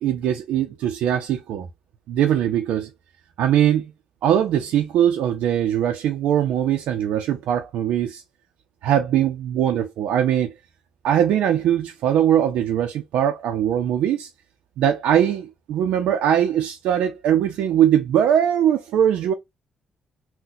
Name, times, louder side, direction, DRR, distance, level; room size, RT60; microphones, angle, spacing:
voice 1, 0.0-1.7 2.1-2.9 3.4-3.9 4.2-8.2 8.8-10.5 11.0-14.3 14.8-19.3, right 10 dB, 90° right, 0.5 m, -21 dB
3.9 x 2.1 x 2.6 m
cardioid pair, 145°, 2 cm